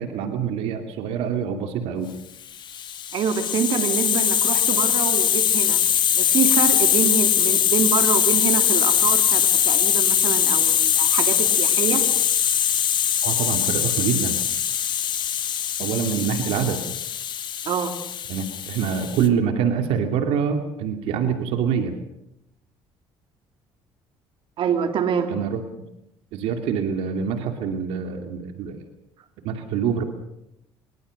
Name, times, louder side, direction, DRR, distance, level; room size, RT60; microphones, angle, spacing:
voice 1, 0.0-2.1 13.2-14.4 15.8-16.8 18.3-21.9 25.3-25.6 26.3-28.8 29.4-30.0, right 7 dB, 80° right, 6 dB, 2.6 m, -25 dB
Hiss, 2.6-19.3, left 9 dB, 55° left, 2.4 m, -21 dB
voice 2, 3.1-5.8 6.1-12.0 17.6-18.0 24.6-25.4, right 7 dB, 60° right, 7 dB, 3.1 m, -26 dB
24.5 x 22.5 x 6.6 m, 0.82 s
cardioid pair, 100°, 10 cm